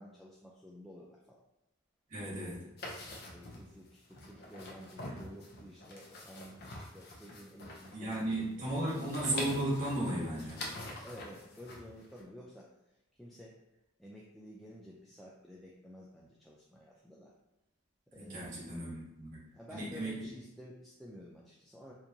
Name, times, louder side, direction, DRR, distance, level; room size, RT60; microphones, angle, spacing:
voice 1, 0.0-1.4 3.1-8.7 11.0-12.7 13.2-13.6 14.0-17.3 18.1-18.5 19.5-21.9, equal, ahead, -6 dB, 0.3 m, -52 dB
voice 2, 2.1-2.7 5.0-5.1 7.9-10.6 18.1-19.4 19.7-20.2, right 1 dB, 40° right, -8 dB, 1.2 m, -35 dB
sound 1, 2.8-12.2, left 1 dB, 50° left, 0.6 m, -46 dB
4.4 x 2.5 x 2.7 m, 0.90 s
head